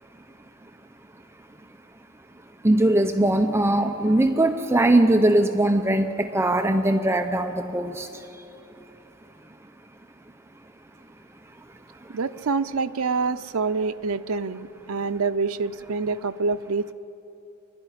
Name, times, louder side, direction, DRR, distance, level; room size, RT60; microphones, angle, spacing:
voice 1, 2.6-8.4 12.0-12.1, right 1 dB, 10° right, 6 dB, 0.6 m, -21 dB
voice 2, 12.1-16.9, right 4 dB, 90° right, 10 dB, 0.6 m, -26 dB
24.5 x 12.0 x 10.0 m, 2.9 s
head